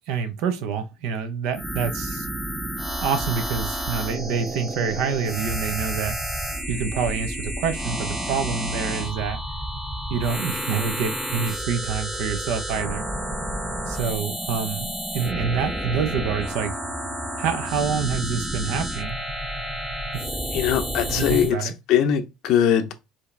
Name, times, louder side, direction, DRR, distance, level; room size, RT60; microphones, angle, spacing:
voice 1, 0.1-2.3 3.0-6.2 6.7-9.4 10.1-13.1 13.9-16.7 17.4-19.2 20.1-20.3 21.1-21.7, right 6 dB, 65° right, 0.8 m, -27 dB
sound 1, 1.5-21.5, right 1 dB, 10° right, 0.7 m, -30 dB
voice 2, 20.5-22.9, left 9 dB, 55° left, 0.6 m, -21 dB
4.8 x 2.9 x 3.3 m
cardioid pair, 170°, 0 cm